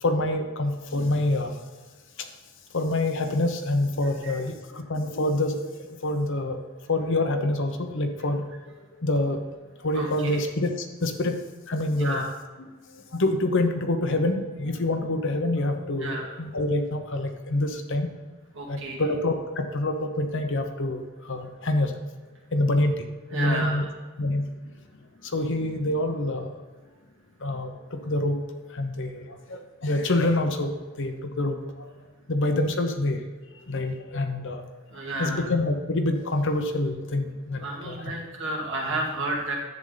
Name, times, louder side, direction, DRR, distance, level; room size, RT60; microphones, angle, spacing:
voice 1, 0.0-1.6 2.7-5.7 6.0-6.6 6.9-8.4 8.9-9.4 9.8-11.3 11.7-12.3 12.6-12.7 12.9-18.1 18.7-22.0 22.5-23.0 23.3-23.9 24.2-24.4 25.2-26.5 27.4-28.4 28.7-31.9 32.3-33.2 33.7-34.6 35.2-38.1, left 2 dB, 55° left, 6 dB, 1.0 m, -26 dB
voice 2, 9.9-10.4 12.0-12.3 16.0-16.3 18.5-19.0 23.3-23.8 34.9-35.5 37.6-39.5, right 2 dB, 55° right, -2 dB, 2.2 m, -31 dB
11.0 x 8.1 x 4.0 m, 1.3 s
head